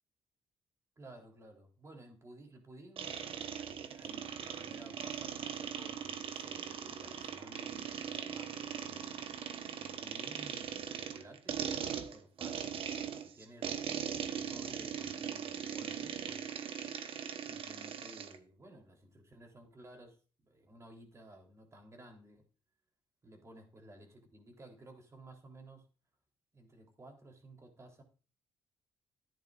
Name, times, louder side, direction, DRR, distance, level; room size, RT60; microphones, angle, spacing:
voice 1, 1.0-9.0 9.8-13.7 14.3-16.6 17.4-22.4 23.2-25.9 26.5-28.0, right 1 dB, 30° right, 2 dB, 3.8 m, -55 dB
sound 1, 3.0-18.4, right 8 dB, 60° right, 1.2 m, -40 dB
sound 2, 6.6-12.9, left 4 dB, 5° left, 5.0 m, -65 dB
14.5 x 10.0 x 2.6 m, 0.36 s
cardioid pair, 100°, 10 cm